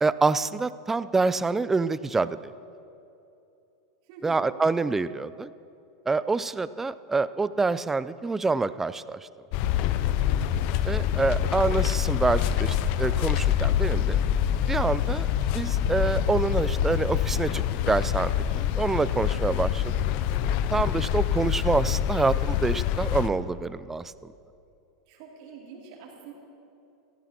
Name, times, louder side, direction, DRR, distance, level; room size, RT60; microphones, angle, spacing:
voice 1, 0.0-2.5 4.2-5.5 6.1-9.2 10.8-14.2 14.7-19.9 20.7-24.1, right 3 dB, 15° right, 16 dB, 0.3 m, -26 dB
voice 2, 4.1-4.5 25.1-26.3, right 5 dB, 60° right, -2 dB, 3.0 m, -45 dB
sound 1, 9.5-23.3, left 10 dB, 55° left, 0.5 m, -26 dB
18.0 x 15.0 x 2.9 m, 2.7 s
hypercardioid pair, 105°, 2 cm